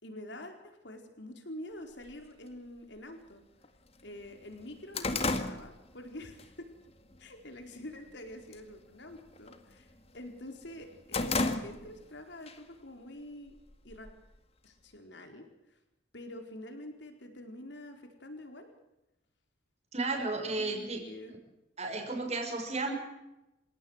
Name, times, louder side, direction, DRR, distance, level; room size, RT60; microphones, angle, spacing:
voice 1, 0.0-3.4 4.0-6.7 7.2-13.6 13.8-14.1 14.6-15.8 16.1-18.7 20.6-21.3, left 1 dB, 60° left, 5 dB, 4.4 m, -46 dB
sound 1, 2.1-2.2 3.1-3.2 3.6-3.7 4.1-6.5 6.9-7.2 7.6-8.1 8.4-8.7 9.0-10.2 10.6-12.1 12.5-12.6 13.5-14.4, left 3 dB, 30° left, 1.9 m, -34 dB
voice 2, 19.9-21.0 21.8-22.9, right 3 dB, 35° right, 4 dB, 5.9 m, -33 dB
28.0 x 17.0 x 8.1 m, 0.93 s
head